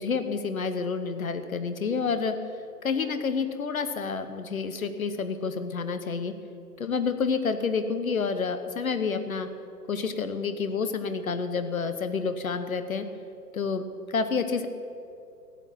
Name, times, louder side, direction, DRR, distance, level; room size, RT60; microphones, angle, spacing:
voice 1, 0.0-2.3 2.8-6.3 6.8-9.5 9.9-13.1 13.5-13.8 14.1-14.7, left 5 dB, 60° left, 9 dB, 1.3 m, -29 dB
14.0 x 8.7 x 8.9 m, 2.6 s
figure-of-eight pair, 130°, 48 cm